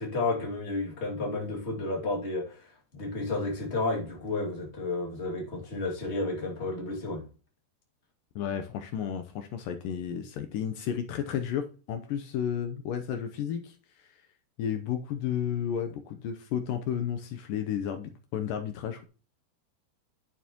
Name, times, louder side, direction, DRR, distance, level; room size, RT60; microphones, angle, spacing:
voice 1, 0.0-7.2, left 2 dB, 25° left, 1.7 m, -32 dB
voice 2, 8.4-13.7 14.0-14.1 14.6-19.0, left 9 dB, 80° left, 2.0 m, -32 dB
10.5 x 6.9 x 3.0 m
omnidirectional pair, 4.7 m